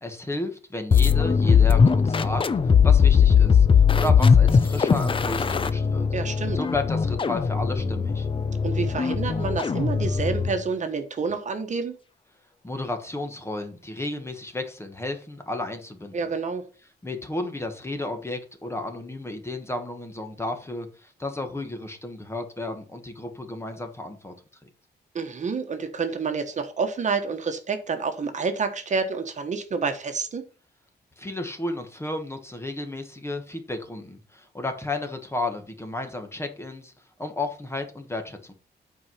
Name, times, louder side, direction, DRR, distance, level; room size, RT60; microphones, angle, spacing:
voice 1, 0.0-2.5 2.8-6.1 6.5-8.3 12.6-16.3 17.0-24.3 24.6-24.7 31.2-36.9 37.2-38.5, left 2 dB, 15° left, 6 dB, 1.3 m, -33 dB
sound 1, 0.9-10.6, left 6 dB, 30° left, 0.6 m, -20 dB
voice 2, 6.1-6.6 8.6-11.9 16.1-16.6 25.1-30.4, right 5 dB, 45° right, 7 dB, 1.2 m, -28 dB
8.8 x 4.8 x 5.7 m, 0.37 s
wide cardioid pair, 135°, 18 cm